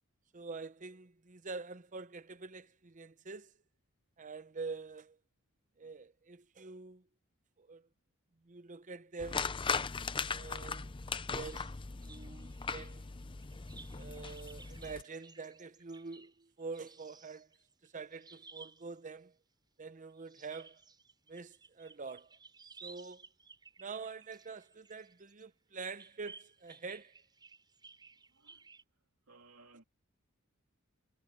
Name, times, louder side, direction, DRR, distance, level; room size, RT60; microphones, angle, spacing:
voice 1, 0.3-3.5 4.2-5.2 5.8-7.0 7.6-7.9 8.4-9.6 10.3-10.9 11.3-13.1 13.9-17.5 17.8-19.3 19.8-20.8 21.3-22.3 22.8-23.3 23.8-27.2, right 4 dB, 35° right, 0.7 m, -46 dB
sound 1, 9.2-15.0, left 5 dB, 25° left, 0.5 m, -38 dB
sound 2, 11.1-11.7 12.0-19.0 20.1-25.4 25.8-28.8, right 4 dB, 20° right, 6.6 m, -57 dB
voice 2, 28.1-28.7 29.3-29.8, right 3 dB, 90° right, 2.9 m, -61 dB
head